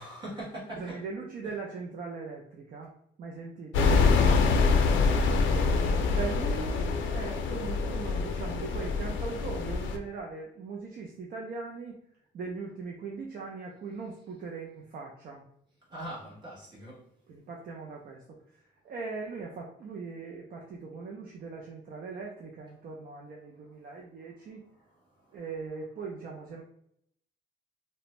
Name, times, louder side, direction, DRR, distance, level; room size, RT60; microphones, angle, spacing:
voice 1, 0.0-1.0 4.2-4.5 15.9-17.0 25.1-25.4, right 1 dB, 25° right, -7 dB, 1.2 m, -41 dB
voice 2, 0.8-2.9 3.2-4.0 5.2-12.0 12.3-15.4 17.3-24.6 25.3-26.6, right 4 dB, 50° right, -1 dB, 0.4 m, -40 dB
sound 1, 3.7-10.0, left 4 dB, 85° left, 0.4 m, -25 dB
2.5 x 2.1 x 3.0 m, 0.71 s
cardioid pair, 155°, 19 cm